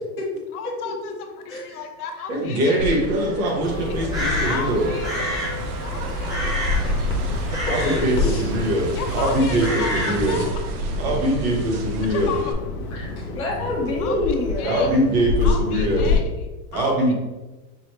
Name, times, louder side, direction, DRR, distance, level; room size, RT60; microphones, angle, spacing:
voice 1, 0.5-1.1 1.6-2.7 4.5-5.4 5.8-6.7 7.7-8.0 8.9-10.5 12.1-12.5 14.0-14.1 14.6-14.9 15.4-17.1, left 5 dB, 80° left, 4 dB, 1.0 m, -33 dB
voice 2, 1.5-1.8 2.5-2.6 3.2-3.3 7.8-7.9 8.2-8.5 12.9-14.9, left 2 dB, 10° left, -8 dB, 0.3 m, -27 dB
voice 3, 2.3-4.9 7.6-10.4 11.0-12.3 14.6-16.1 16.7-17.1, right 1 dB, 45° right, -1 dB, 1.4 m, -22 dB
sound 1, 2.8-12.5, right 2 dB, 80° right, 0.8 m, -32 dB
Crow, 3.6-10.5, left 1 dB, 10° right, 0.7 m, -29 dB
Bird vocalization bird call bird song, 5.9-16.2, left 3 dB, 45° left, 1.0 m, -28 dB
5.5 x 3.1 x 3.1 m, 1.1 s
supercardioid pair, 175°, 45 cm